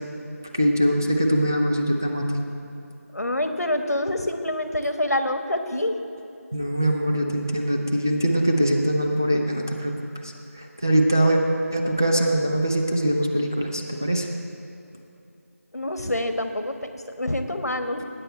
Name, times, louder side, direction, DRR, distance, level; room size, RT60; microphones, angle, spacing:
voice 1, 0.6-2.4 6.5-9.9 10.8-11.4 11.7-14.3, right 1 dB, 10° right, 0 dB, 0.4 m, -22 dB
voice 2, 3.1-5.9 15.7-18.0, left 1 dB, 90° left, 6 dB, 1.3 m, -26 dB
19.5 x 9.1 x 4.4 m, 2.6 s
figure-of-eight pair, 170°, 8 cm